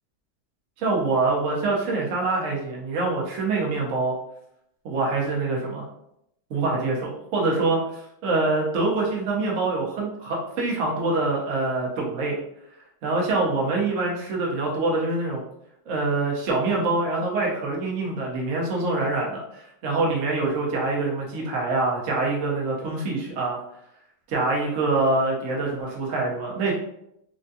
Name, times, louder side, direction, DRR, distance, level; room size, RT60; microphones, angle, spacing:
voice 1, 0.8-4.2 4.8-5.8 6.5-7.8 8.2-12.4 13.0-15.4 15.9-23.6 24.3-26.7, right 3 dB, 60° right, -3 dB, 0.8 m, -25 dB
3.6 x 2.3 x 2.7 m, 0.78 s
omnidirectional pair, 2.3 m